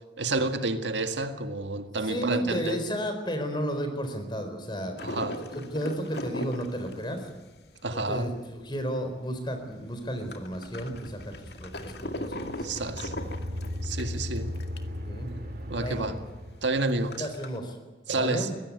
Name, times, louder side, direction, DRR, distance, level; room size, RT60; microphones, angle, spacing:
voice 1, 0.2-2.8 5.0-5.4 7.8-8.3 12.6-13.1 13.8-14.5 15.7-16.2 16.6-17.3 18.1-18.5, right 2 dB, 85° right, 1.9 m, -29 dB
voice 2, 2.0-5.2 5.5-7.2 7.9-11.3 11.6-12.6 15.0-15.3 15.8-16.1 17.2-17.8 18.1-18.5, equal, 25° left, 4.3 m, -33 dB
sound 1, 5.0-9.0 9.4-9.5 9.6-15.0 15.4-15.5 15.7-15.8 16.3-17.6, left 1 dB, 65° left, 2.1 m, -39 dB
sound 2, 10.4-17.1, left 1 dB, 50° right, 2.9 m, -38 dB
23.0 x 16.5 x 9.6 m
head